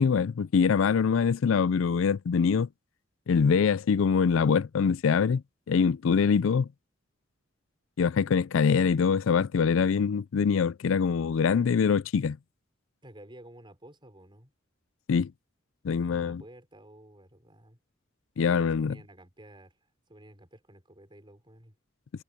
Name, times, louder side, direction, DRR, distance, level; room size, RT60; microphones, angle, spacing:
voice 1, 0.0-2.7 3.3-5.4 5.7-6.7 8.0-12.4 15.1-15.3 15.8-16.4 18.4-18.9, left 6 dB, 75° left, 0.4 m, -24 dB
voice 2, 11.2-11.7 13.0-14.5 15.9-17.8 18.5-19.8 20.1-21.8, right 1 dB, 25° right, 5.8 m, -52 dB
head